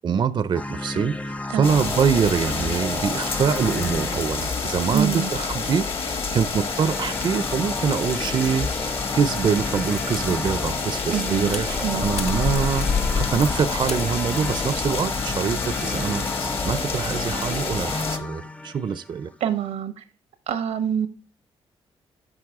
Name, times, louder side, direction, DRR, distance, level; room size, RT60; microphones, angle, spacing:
voice 1, 0.0-19.3, right 6 dB, 45° right, 15 dB, 0.5 m, -25 dB
sound 1, 0.5-5.4 6.5-19.6, left 2 dB, 10° left, 0.4 m, -34 dB
voice 2, 1.5-1.8 4.9-5.3 11.1-11.5 11.8-12.1 19.4-20.0 20.5-21.1, right 9 dB, 90° right, 11 dB, 0.9 m, -26 dB
sound 2, 1.6-18.2, left 4 dB, 55° left, 1.4 m, -28 dB
sound 3, 1.8-2.0 3.4-4.5 4.8-5.7 6.3-6.6 7.3-8.1 9.6-9.7 9.9-10.5 10.9-14.7, left 6 dB, 75° left, 0.9 m, -40 dB
9.6 x 5.8 x 3.6 m, 0.38 s
cardioid pair, 65°, 11 cm